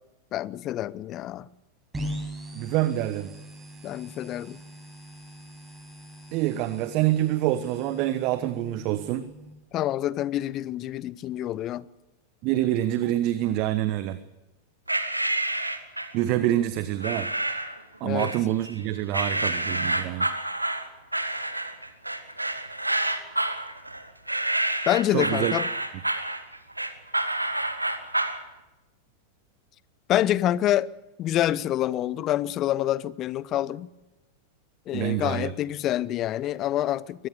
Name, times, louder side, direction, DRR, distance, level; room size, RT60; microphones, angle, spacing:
voice 1, 0.3-1.5 3.8-4.6 9.7-11.9 18.0-18.3 24.9-25.7 30.1-30.9 31.2-33.9 34.9-37.3, left 13 dB, 35° left, 0.8 m, -27 dB
sound 1, 1.9-9.5, equal, 10° right, 5.7 m, -41 dB
voice 2, 2.5-3.3 6.3-9.3 12.4-14.2 16.1-17.3 18.0-20.3 25.1-25.5 34.9-35.5, right 14 dB, 40° right, 1.1 m, -26 dB
sound 2, 14.9-16.2 17.0-17.8 18.2-18.8 19.1-28.4, right 1 dB, 85° right, 1.7 m, -28 dB
23.0 x 19.0 x 6.8 m
figure-of-eight pair, 90°, 0 cm